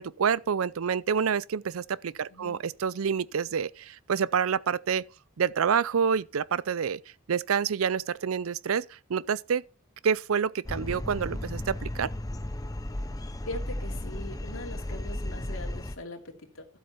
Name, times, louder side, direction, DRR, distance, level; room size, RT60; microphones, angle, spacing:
voice 1, 0.0-5.0 5.4-7.0 7.3-8.8 9.1-9.6 10.0-12.1, right 7 dB, 85° right, 0.5 m, -27 dB
voice 2, 2.3-2.6 13.5-16.7, left 1 dB, 75° left, 2.8 m, -41 dB
sound 1, 10.6-16.0, left 1 dB, 15° left, 0.6 m, -35 dB
12.5 x 7.9 x 4.3 m
head